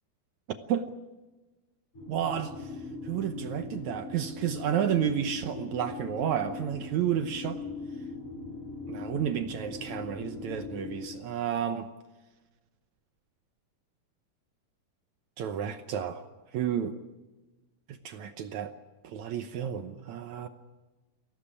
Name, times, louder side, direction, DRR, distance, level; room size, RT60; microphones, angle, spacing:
sound 1, 1.9-11.0, left 3 dB, 35° left, 8.7 m, -40 dB
voice 1, 2.1-2.5 3.1-7.6 8.9-11.9 15.4-16.2 16.5-17.0 18.1-18.7 19.0-20.5, right 9 dB, 70° right, 1.7 m, -31 dB
23.5 x 17.5 x 9.9 m
omnidirectional pair, 4.4 m